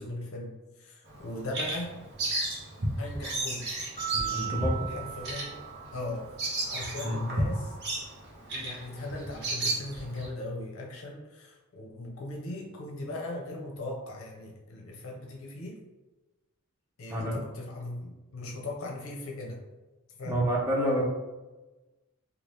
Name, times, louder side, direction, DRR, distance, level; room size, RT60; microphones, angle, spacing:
voice 1, 0.0-2.0 3.0-3.7 4.9-5.6 5.9-6.3 6.7-7.7 8.5-15.8 17.0-19.6 20.2-20.5, left 1 dB, 70° left, -1 dB, 0.6 m, -39 dB
Bird vocalization bird call bird song, 1.1-10.3, right 1 dB, 55° right, 0.8 m, -33 dB
sound 1, 4.0-6.3, right 11 dB, 40° left, 0.8 m, -37 dB
voice 2, 4.1-4.9 7.0-7.2 17.1-17.3 20.3-21.0, equal, 15° right, -4 dB, 0.7 m, -28 dB
2.7 x 2.3 x 3.3 m, 1.1 s
head